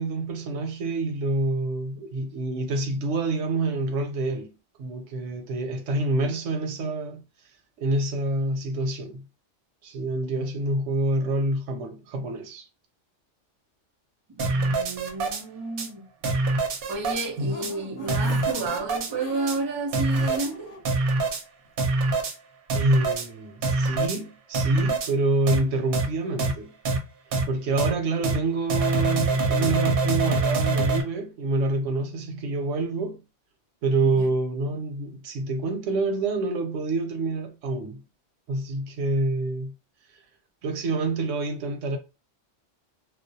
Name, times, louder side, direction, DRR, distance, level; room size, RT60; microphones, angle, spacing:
voice 1, 0.0-4.5 4.8-7.2 7.8-9.2 9.8-12.7 17.4-17.5 22.7-26.7 27.5-33.2 33.8-38.0 38.5-39.7 40.6-42.0, right 2 dB, 80° right, 0.9 m, -27 dB
voice 2, 14.4-16.0 16.9-20.7 34.0-34.2, right 3 dB, 40° right, 0.3 m, -31 dB
sound 1, 14.4-15.4 15.8-15.9 16.2-17.3 17.6-17.7 18.1-19.1 19.5-19.6 19.9-20.5 20.9-21.4 21.8-22.3 22.7-23.3 23.6-24.2 24.5-25.1 25.5-25.6 25.9-26.1 26.4-26.5 26.9-27.0 27.3-27.4 27.8-27.9 28.2-28.4 28.7-31.0, right 3 dB, 60° right, 0.7 m, -24 dB
sound 2, 16.8-20.8 21.2-21.3 21.6-21.7, left 3 dB, 75° left, 0.9 m, -42 dB
2.4 x 2.0 x 2.6 m
omnidirectional pair, 1.3 m